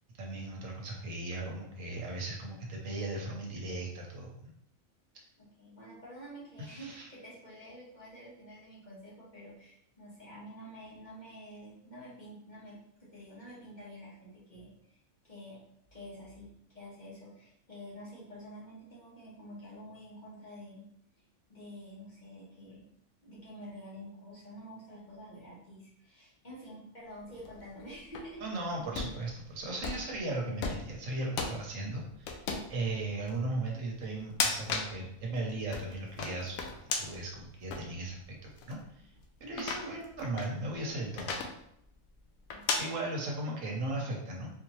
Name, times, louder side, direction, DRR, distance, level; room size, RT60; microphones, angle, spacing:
voice 1, 0.2-4.3 6.6-7.1 28.4-39.1 39.4-41.4 42.8-44.5, right 2 dB, 70° right, -1 dB, 1.2 m, -37 dB
voice 2, 5.4-15.6 15.9-20.8 21.5-22.9 23.2-28.5 29.6-29.7 42.5-42.6, equal, 35° left, -7 dB, 1.2 m, -49 dB
sound 1, 27.3-28.2 28.8-29.1 29.8-30.1 30.6-30.9 31.4-31.6 32.3-32.7 33.3-33.4 34.2-34.9 35.4-37.2 37.7-37.8 38.6-38.7 39.5-40.5 41.2-41.5 42.5-42.8, left 4 dB, 85° left, 1.0 m, -34 dB
4.2 x 2.8 x 3.0 m, 0.74 s
omnidirectional pair, 1.4 m